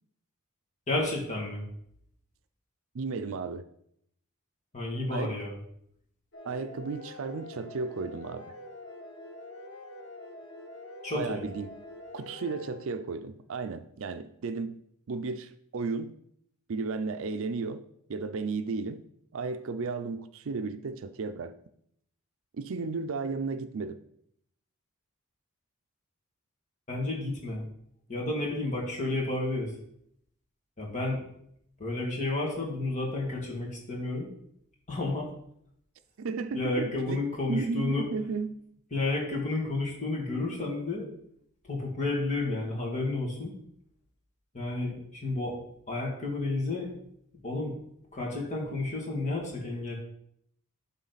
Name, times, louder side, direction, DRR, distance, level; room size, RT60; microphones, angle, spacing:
voice 1, 0.9-1.7 4.7-5.5 11.0-11.4 26.9-27.6 28.1-29.7 30.8-31.2 31.8-34.3 34.9-35.3 36.5-38.1 38.9-41.1 41.6-43.5 44.5-45.6 45.9-46.9 47.4-47.7 48.1-49.9, left 2 dB, 35° left, 2.2 m, -31 dB
voice 2, 2.9-3.6 5.1-5.4 6.4-8.5 11.1-11.7 12.1-14.7 15.1-16.1 16.7-19.0 19.3-21.6 22.5-24.0 36.2-37.2 37.5-38.6, right 4 dB, 65° right, 0.5 m, -34 dB
sound 1, 6.3-13.0, left 2 dB, 60° left, 1.4 m, -46 dB
11.5 x 3.8 x 4.0 m
head